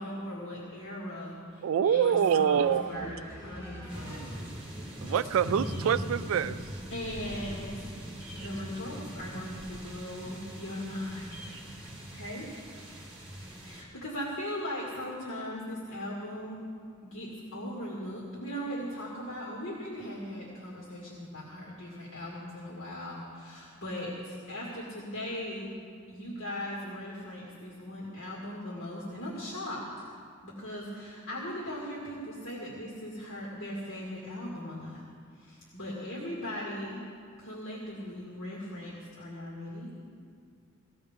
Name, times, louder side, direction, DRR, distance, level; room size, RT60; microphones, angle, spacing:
voice 1, 0.0-4.4 6.9-7.9 8.3-11.5 12.1-12.5 13.6-16.6 17.0-25.7 26.1-30.1 30.4-35.0 35.4-37.0 37.4-39.9, left 1 dB, 65° left, -5 dB, 2.2 m, -39 dB
voice 2, 1.6-3.1 5.0-6.6, right 8 dB, 75° right, 14 dB, 0.3 m, -25 dB
voice 3, 2.5-4.5, equal, 25° left, -10 dB, 3.1 m, -46 dB
sound 1, 3.9-13.8, equal, 25° right, 2.2 m, -41 dB
19.0 x 15.0 x 3.7 m, 2.3 s
head